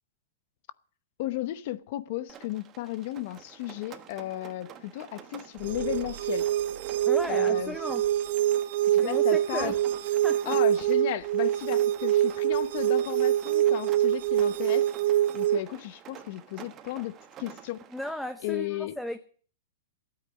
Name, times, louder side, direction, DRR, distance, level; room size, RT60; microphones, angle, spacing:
voice 1, 1.2-6.5 7.3-7.8 8.8-9.7 10.4-17.8 18.4-19.0, left 15 dB, 45° left, 0.9 m, -35 dB
Rain, 2.3-18.1, right 9 dB, 25° right, 1.3 m, -49 dB
sound 1, 5.6-15.6, right 12 dB, 55° right, 0.7 m, -25 dB
voice 2, 7.1-8.0 9.0-9.7 10.2-10.6 17.9-19.2, left 1 dB, ahead, 0.7 m, -35 dB
13.0 x 9.1 x 8.3 m
hypercardioid pair, 155°, 0 cm